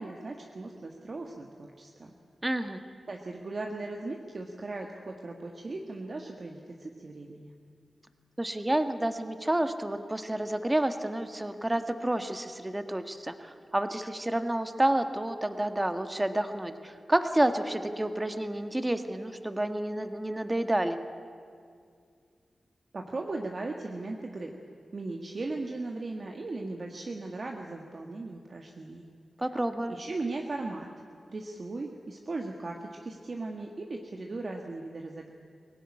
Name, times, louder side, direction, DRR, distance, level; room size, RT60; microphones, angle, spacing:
voice 1, 0.0-2.1 3.1-7.5 22.9-24.5 24.9-29.0 29.9-30.9 31.3-35.3, right 2 dB, 45° right, 2 dB, 1.6 m, -38 dB
voice 2, 2.4-2.8 8.4-21.0 29.4-29.9, right 1 dB, 15° right, 8 dB, 1.5 m, -29 dB
22.5 x 18.0 x 9.9 m, 2.2 s
wide cardioid pair, 85°, 0 cm